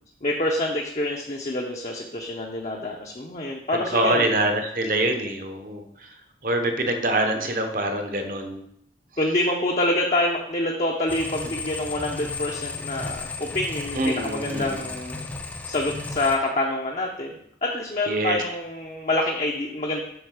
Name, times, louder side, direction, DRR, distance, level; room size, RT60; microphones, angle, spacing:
voice 1, 0.2-4.3 9.2-15.3 15.7-20.0, left 1 dB, 40° left, -1 dB, 0.7 m, -27 dB
voice 2, 3.7-6.1 6.4-8.6 13.9-14.9 18.1-18.4, right 1 dB, 50° right, 5 dB, 1.0 m, -25 dB
sound 1, 11.1-16.4, left 3 dB, 10° left, 0.5 m, -34 dB
7.9 x 3.9 x 6.5 m, 0.73 s
head